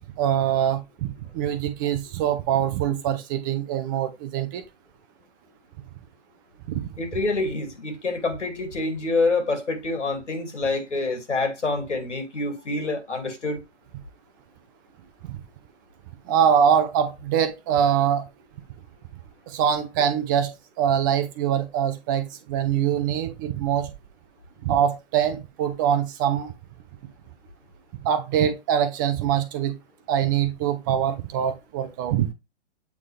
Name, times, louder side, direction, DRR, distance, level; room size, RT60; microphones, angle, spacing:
voice 1, 0.2-4.6 6.7-6.9 16.3-18.3 19.5-23.9 24.6-26.5 28.0-29.8 30.1-32.3, right 9 dB, 20° right, 0.5 m, -23 dB
voice 2, 7.0-13.6, left 3 dB, 85° left, 2.5 m, -26 dB
8.3 x 3.7 x 3.2 m
hypercardioid pair, 135°, 35 cm